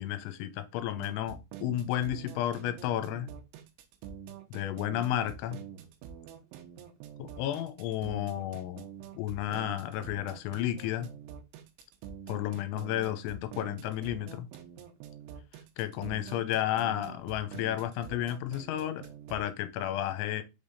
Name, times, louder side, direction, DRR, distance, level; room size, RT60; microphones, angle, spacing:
voice 1, 0.0-3.3 4.5-5.6 7.2-8.8 9.1-11.1 12.3-14.5 15.8-20.4, left 12 dB, 85° left, 3.0 m, -32 dB
sound 1, 0.9-19.5, right 9 dB, 85° right, 3.3 m, -46 dB
7.3 x 3.5 x 4.0 m
omnidirectional pair, 5.5 m